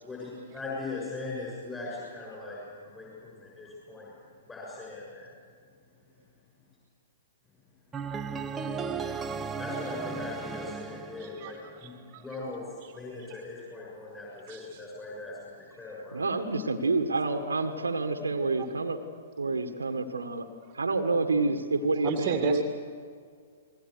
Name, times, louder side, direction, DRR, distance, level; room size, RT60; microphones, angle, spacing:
voice 1, 0.0-4.1 4.5-5.3 8.2-8.7 9.6-16.3, left 3 dB, 10° left, -5 dB, 7.2 m, -40 dB
sound 1, 7.9-12.0, right 5 dB, 15° right, 1.0 m, -36 dB
voice 2, 11.2-12.2 12.8-12.9 13.3-13.4 14.5-14.8 22.0-22.6, right 7 dB, 30° right, 5 dB, 2.1 m, -34 dB
voice 3, 16.1-19.0 19.4-20.5 20.7-22.6, right 3 dB, 70° right, 7 dB, 1.8 m, -28 dB
30.0 x 21.0 x 6.7 m, 2.1 s
figure-of-eight pair, 115°, 0 cm